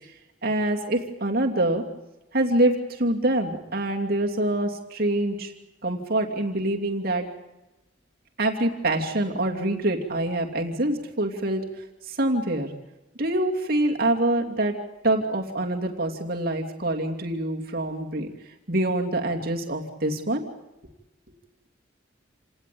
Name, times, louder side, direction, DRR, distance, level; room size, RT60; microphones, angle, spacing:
voice 1, 0.4-1.8 2.3-5.5 5.8-7.2 8.4-11.6 12.1-12.7 13.2-14.7 15.0-18.3 18.7-20.4, right 1 dB, 50° right, 2 dB, 2.9 m, -25 dB
28.5 x 19.0 x 8.7 m, 0.99 s
head